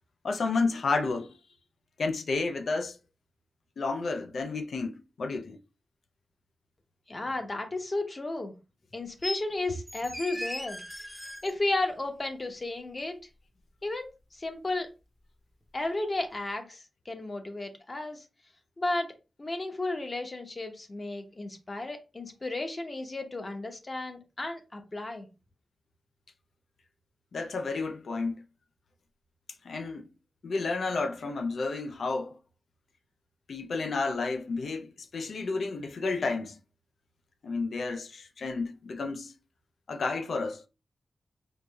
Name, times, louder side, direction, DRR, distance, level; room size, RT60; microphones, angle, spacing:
voice 1, 0.2-1.3 2.0-3.0 3.8-5.6 27.3-28.4 29.6-30.1 30.4-32.4 33.5-36.6 37.4-39.3 39.9-40.6, left 3 dB, 70° left, 0.5 m, -31 dB
voice 2, 7.1-8.5 8.9-10.8 11.4-13.2 13.8-14.9 15.7-18.2 18.8-19.1 19.4-25.3, left 2 dB, 35° left, 0.8 m, -33 dB
sound 1, 9.2-9.4 9.9-11.5 13.0-13.1, left 1 dB, 5° left, 0.7 m, -37 dB
4.6 x 2.5 x 2.3 m
wide cardioid pair, 90°, 0 cm